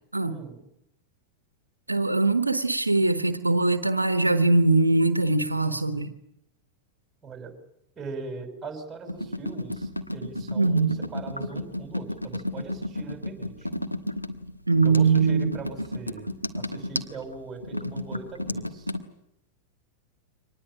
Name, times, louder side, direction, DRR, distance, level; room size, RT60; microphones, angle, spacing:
voice 1, 0.3-0.6 7.2-7.5 8.0-13.7 14.8-18.9, right 4 dB, 15° right, 5 dB, 6.0 m, -40 dB
voice 2, 1.9-6.1 10.5-11.0 14.7-15.5, right 3 dB, 85° right, 11 dB, 1.1 m, -22 dB
sound 1, 9.1-19.0, left 1 dB, 90° left, 1.3 m, -33 dB
25.0 x 19.5 x 8.8 m, 0.81 s
figure-of-eight pair, 90°, 0 cm